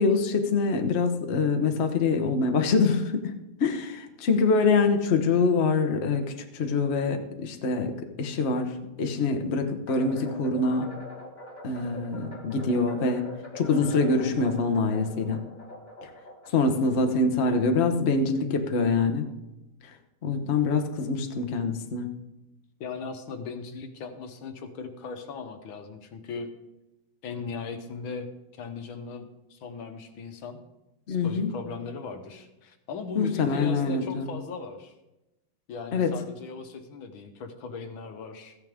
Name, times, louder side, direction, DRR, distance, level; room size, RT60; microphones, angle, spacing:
voice 1, 0.0-3.3 3.6-10.9 11.6-13.3 13.5-15.4 16.5-19.3 20.2-22.1 31.1-31.5 33.1-34.3 35.9-36.2, left 4 dB, 45° left, 5 dB, 0.9 m, -25 dB
sound 1, 9.9-18.2, left 1 dB, 25° left, 1.2 m, -44 dB
voice 2, 22.8-26.5 27.2-30.6 31.1-34.9 35.7-38.6, left 4 dB, 75° left, 7 dB, 1.8 m, -38 dB
14.5 x 9.6 x 3.6 m, 0.96 s
omnidirectional pair, 2.3 m